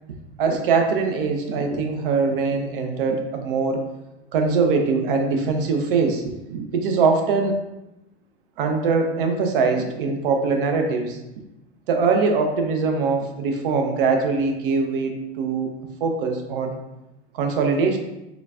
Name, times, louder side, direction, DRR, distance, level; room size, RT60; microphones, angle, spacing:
voice 1, 0.4-3.8 4.3-7.6 8.6-11.2 11.9-15.7 16.0-16.8 17.3-18.0, right 4 dB, 55° right, 4 dB, 0.6 m, -22 dB
3.8 x 2.3 x 2.4 m, 0.94 s
figure-of-eight pair, 85°, 33 cm